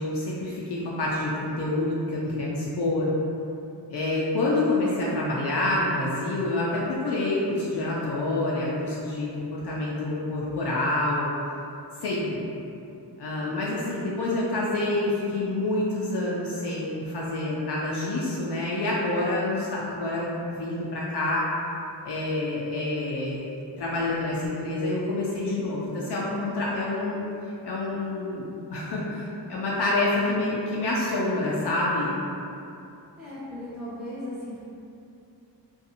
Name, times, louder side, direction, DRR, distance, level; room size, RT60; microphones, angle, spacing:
voice 1, 0.0-3.1 3.9-11.3 12.0-12.5 13.2-21.4 22.0-27.2 27.6-32.1, left 2 dB, 65° left, -6 dB, 0.5 m, -27 dB
voice 2, 33.2-34.6, left 1 dB, ahead, -12 dB, 0.8 m, -37 dB
2.6 x 2.3 x 2.7 m, 2.7 s
cardioid pair, 55°, 44 cm